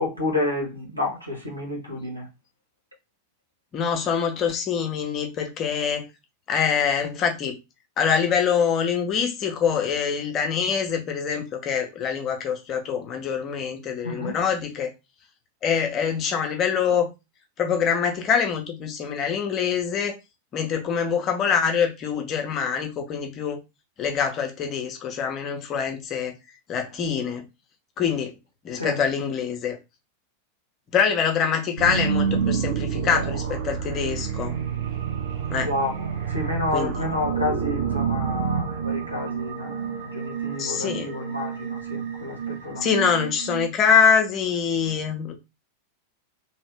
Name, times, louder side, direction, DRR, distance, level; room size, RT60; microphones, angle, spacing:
voice 1, 0.0-2.3 14.0-14.4 28.8-29.0 35.6-42.8, left 2 dB, 90° right, 1.5 m, -30 dB
voice 2, 3.7-6.1 6.5-7.6 8.0-14.9 15.6-17.1 17.6-20.2 20.5-23.6 24.0-26.3 26.7-27.4 28.0-28.3 28.6-29.8 30.9-34.6 35.5-35.7 36.7-37.0 40.6-41.1 42.8-45.4, left 7 dB, 30° left, 0.8 m, -24 dB
sound 1, 31.8-43.7, right 7 dB, 55° right, 0.7 m, -29 dB
2.9 x 2.7 x 3.3 m
figure-of-eight pair, 90°, 0 cm